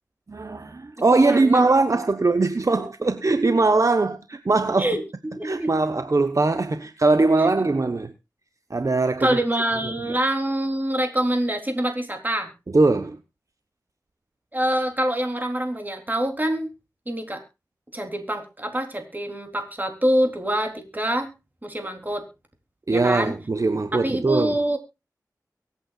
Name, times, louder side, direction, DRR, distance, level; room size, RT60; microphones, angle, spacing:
voice 1, 0.3-4.9 5.4-8.1 8.7-9.4 10.1-10.2 12.7-13.2 22.9-24.6, right 3 dB, 55° right, 1.0 m, -21 dB
voice 2, 1.1-1.7 4.8-5.7 7.4-7.5 9.2-12.5 14.5-16.7 17.1-17.4 17.9-21.3 21.6-22.3 22.9-23.3 23.9-24.8, right 1 dB, 25° right, 3.8 m, -25 dB
23.5 x 8.7 x 2.4 m
wide cardioid pair, 60°, 7 cm